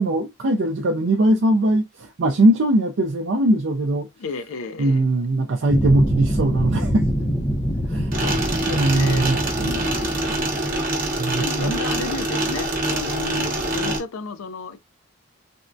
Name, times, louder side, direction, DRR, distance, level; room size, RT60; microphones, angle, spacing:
voice 1, 0.0-4.1 4.8-7.1 7.9-8.1 8.7-9.7 11.2-11.8, right 1 dB, 65° right, 0.4 m, -20 dB
voice 2, 4.2-5.0 8.1-9.3 9.6-10.5 11.4-14.8, left 4 dB, 90° left, 0.4 m, -33 dB
sound 1, 5.7-10.7, equal, 15° left, 0.5 m, -25 dB
sound 2, 8.1-14.0, right 1 dB, 40° right, 0.8 m, -25 dB
3.4 x 2.1 x 2.6 m
head